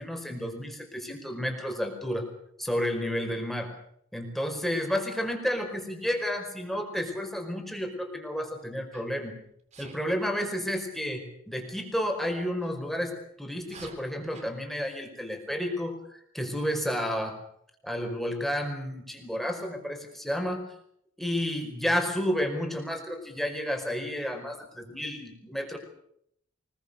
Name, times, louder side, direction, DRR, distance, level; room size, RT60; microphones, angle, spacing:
voice 1, 0.0-2.2 2.6-3.7 4.1-9.4 9.8-17.4 17.8-20.6 21.2-25.8, equal, ahead, 3 dB, 4.9 m, -31 dB
Sneeze, 8.9-9.2 9.7-10.0 12.6-12.7 13.6-14.5, right 3 dB, 35° right, 3.7 m, -48 dB
24.5 x 21.5 x 6.9 m, 0.70 s
head